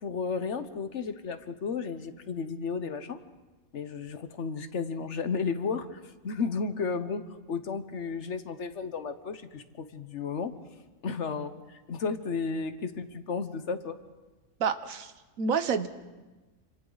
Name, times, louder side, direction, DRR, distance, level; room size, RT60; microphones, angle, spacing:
voice 1, 0.0-3.2 3.7-7.2 7.5-10.5 11.0-14.0, left 5 dB, 60° left, 10 dB, 1.3 m, -33 dB
voice 2, 14.6-15.9, right 6 dB, 85° right, 11 dB, 1.4 m, -29 dB
28.0 x 26.5 x 4.0 m, 1.2 s
omnidirectional pair, 1.4 m